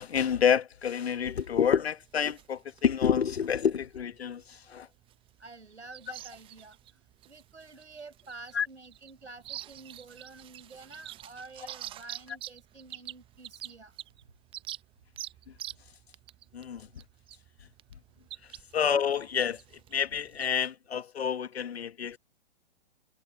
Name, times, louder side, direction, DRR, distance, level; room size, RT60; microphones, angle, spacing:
voice 1, 0.0-4.9 8.5-8.7 16.5-16.9 18.7-19.6 19.9-22.2, left 7 dB, 65° left, 1.7 m, -28 dB
sound 1, 1.2-20.5, right 13 dB, 15° right, 0.9 m, -47 dB
voice 2, 5.4-7.0 7.3-13.9, right 3 dB, 80° right, 4.9 m, -49 dB
figure-of-eight pair, 120°, 34 cm